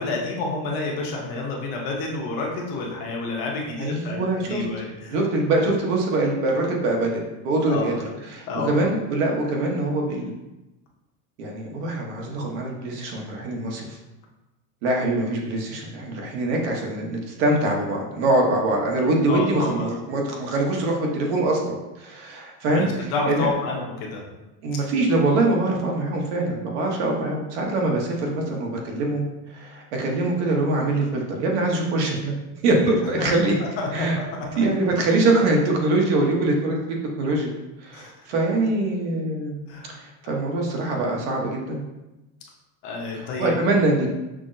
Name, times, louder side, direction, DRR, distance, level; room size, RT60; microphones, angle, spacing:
voice 1, 0.0-5.1 7.7-8.0 8.5-8.8 19.3-19.9 22.7-24.2 33.2-33.3 33.8-34.6 37.9-38.1 39.7-40.0 42.8-43.5, left 3 dB, 50° left, -1 dB, 0.8 m, -29 dB
voice 2, 3.8-4.6 5.1-7.9 8.3-10.3 11.4-14.0 14.8-23.5 24.6-29.2 29.5-32.3 32.6-33.5 33.9-34.2 34.6-36.8 37.2-37.5 37.8-39.6 40.0-41.8 43.1-44.1, right 2 dB, 65° right, 0 dB, 1.0 m, -23 dB
6.0 x 2.0 x 2.6 m, 1.0 s
supercardioid pair, 175°, 38 cm